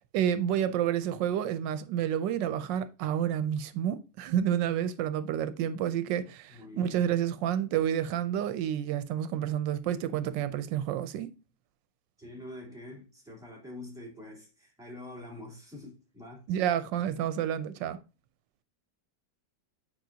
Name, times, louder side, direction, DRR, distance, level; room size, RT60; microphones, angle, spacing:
voice 1, 0.1-11.3 16.5-18.0, right 10 dB, 85° right, 1.3 m, -29 dB
voice 2, 6.5-7.1 12.2-16.4, left 1 dB, ahead, 3.2 m, -45 dB
9.0 x 5.1 x 2.7 m
omnidirectional pair, 1.9 m